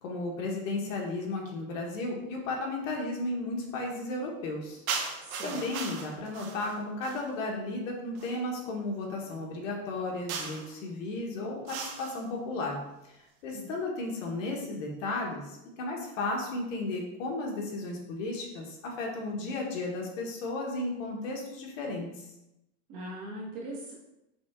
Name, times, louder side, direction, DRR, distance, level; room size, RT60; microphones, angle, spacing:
voice 1, 0.0-12.8 13.0-13.1 13.4-22.2, left 2 dB, 65° left, 0 dB, 1.2 m, -34 dB
sound 1, 4.9-7.3 8.1-8.4 10.3-10.7 11.7-12.2, right 5 dB, 85° right, 0.9 m, -37 dB
voice 2, 5.2-5.6 13.5-13.7 22.9-23.9, right 1 dB, 35° right, -3 dB, 1.0 m, -40 dB
6.1 x 2.3 x 3.5 m, 0.90 s
supercardioid pair, 180°, 41 cm